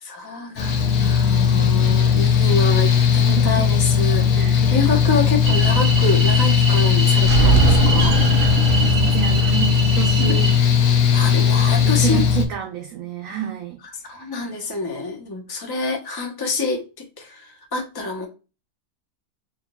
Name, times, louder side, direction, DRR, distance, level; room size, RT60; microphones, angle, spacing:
voice 1, 0.0-4.2 4.6-8.2 10.2-10.3 11.1-12.2 14.0-18.3, left 3 dB, 20° left, 1 dB, 0.6 m, -27 dB
Mechanical fan, 0.6-12.5, left 7 dB, 70° left, 1.1 m, -17 dB
voice 2, 3.3-3.9 4.3-4.6 8.8-10.5 11.4-13.8 14.1-14.3, right 11 dB, 65° right, 2 dB, 1.0 m, -30 dB
sound 1, 5.4-10.6, right 6 dB, 90° right, 1.2 m, -22 dB
4.4 x 3.0 x 2.2 m, 0.30 s
omnidirectional pair, 1.6 m